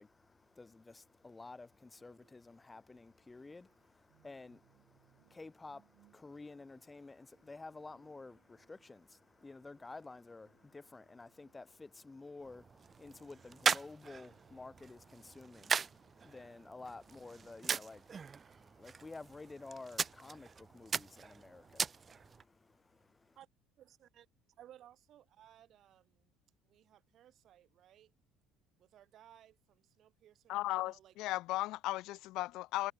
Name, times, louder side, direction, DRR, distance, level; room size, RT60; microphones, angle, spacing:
voice 1, 0.0-23.4, left 3 dB, 15° left, 1.3 m, -52 dB
sound 1, 1.7-16.3, right 20 dB, 70° right, 4.9 m, -74 dB
sound 2, 12.4-22.4, right 6 dB, 25° right, 0.3 m, -40 dB
voice 2, 23.8-24.3 24.6-26.0 26.6-28.1 28.8-31.4, right 11 dB, 50° right, 5.2 m, -61 dB
voice 3, 30.5-32.9, left 18 dB, 65° left, 0.5 m, -36 dB
cardioid pair, 130°, 0 cm